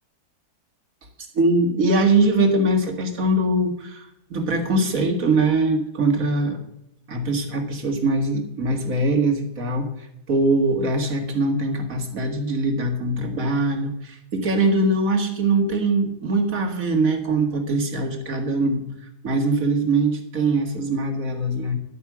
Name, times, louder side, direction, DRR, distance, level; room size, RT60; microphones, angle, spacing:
voice 1, 1.3-6.6 7.1-9.9 10.3-18.9 19.2-21.8, right 2 dB, 60° right, 4 dB, 2.3 m, -22 dB
11.5 x 9.6 x 6.1 m, 0.81 s
omnidirectional pair, 1.7 m